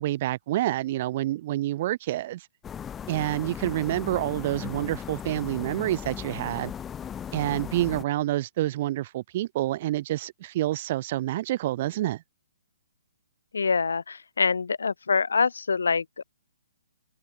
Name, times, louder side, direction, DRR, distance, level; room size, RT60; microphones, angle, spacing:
voice 1, 0.0-2.5 3.1-6.7 7.3-12.2, right 15 dB, 45° right, 3.5 m, -28 dB
sound 1, 2.6-8.0, left 8 dB, 15° left, 4.8 m, -37 dB
voice 2, 13.5-16.2, left 5 dB, 80° left, 2.8 m, -25 dB
hypercardioid pair, 140°, 0 cm